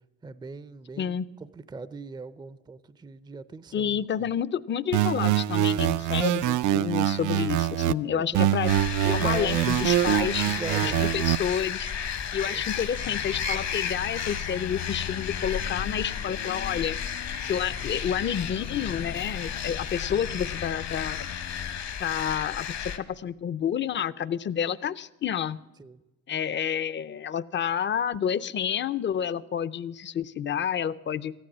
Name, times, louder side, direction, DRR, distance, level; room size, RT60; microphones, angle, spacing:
voice 1, 0.2-4.0 8.1-8.4 9.0-9.7 10.0-11.0 12.4-12.6 25.8-26.0, right 4 dB, 15° right, 16 dB, 0.5 m, -39 dB
voice 2, 1.0-1.3 3.7-8.7 9.1-10.4 10.8-11.9 12.3-17.0 17.4-21.3 22.0-25.6 26.3-31.3, left 8 dB, 40° left, 17 dB, 0.5 m, -29 dB
sound 1, 4.9-7.9 8.3-11.4, right 13 dB, 75° right, 0.5 m, -24 dB
sound 2, 8.7-23.0, left 7 dB, 60° left, 1.2 m, -33 dB
sound 3, 12.2-21.8, left 10 dB, 75° left, 0.7 m, -43 dB
14.0 x 10.5 x 7.3 m, 1.0 s
cardioid pair, 90°, 30 cm